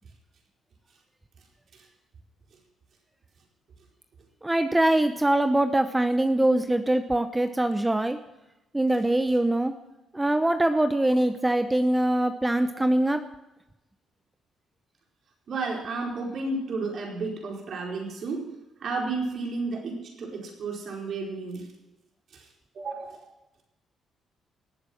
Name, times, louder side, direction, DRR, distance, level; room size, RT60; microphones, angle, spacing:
voice 1, 4.4-8.2 8.7-9.7 10.1-13.2, right 1 dB, 10° right, 9 dB, 0.8 m, -23 dB
voice 2, 15.5-18.5 18.8-21.7 22.3-22.5 22.7-23.3, right 3 dB, 60° right, 0 dB, 4.6 m, -32 dB
18.5 x 8.1 x 6.4 m, 0.96 s
cardioid pair, 90°, 0 cm